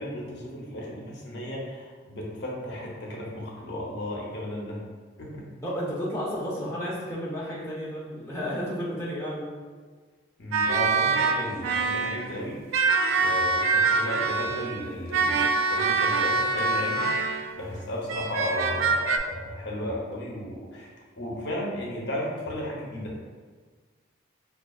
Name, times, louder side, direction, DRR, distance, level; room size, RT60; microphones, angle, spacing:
voice 1, 0.0-4.8 5.2-5.5 10.4-12.6 13.1-17.3 17.6-20.9 21.2-23.2, left 1 dB, 60° left, -3 dB, 0.7 m, -34 dB
voice 2, 5.6-9.5, equal, 15° left, -7 dB, 0.6 m, -32 dB
sound 1, 10.5-12.4 12.7-17.6 18.1-19.2, right 4 dB, 90° right, 0.3 m, -25 dB
5.3 x 2.3 x 2.3 m, 1.5 s
head